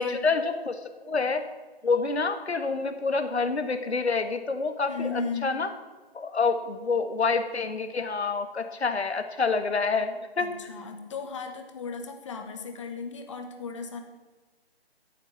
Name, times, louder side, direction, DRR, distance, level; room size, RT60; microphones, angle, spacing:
voice 1, 0.0-1.4 1.8-5.7 6.1-10.5, left 4 dB, 85° left, 8 dB, 1.7 m, -27 dB
voice 2, 4.9-5.5 10.4-14.0, left 4 dB, 30° left, 5 dB, 1.5 m, -35 dB
12.5 x 8.4 x 7.3 m, 1.3 s
hypercardioid pair, 165°, 32 cm